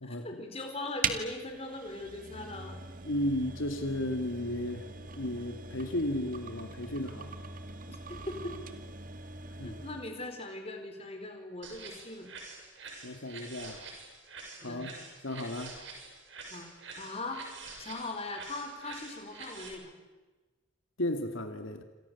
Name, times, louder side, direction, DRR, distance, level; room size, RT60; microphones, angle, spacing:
voice 1, 0.0-2.8 7.9-8.6 9.6-12.3 14.6-14.9 16.5-16.7 17.0-17.5 17.8-19.9, left 2 dB, 30° left, 4 dB, 4.6 m, -40 dB
sound 1, 1.0-10.1, right 5 dB, 45° right, 2.2 m, -41 dB
voice 2, 3.0-4.9 5.1-7.3 9.6-9.8 13.0-13.8 14.6-14.9 15.2-15.8 21.0-21.8, left 1 dB, 80° left, 7 dB, 2.3 m, -34 dB
sound 2, 11.6-19.7, right 4 dB, 65° right, 7.6 m, -47 dB
28.5 x 27.5 x 7.2 m, 1.2 s
head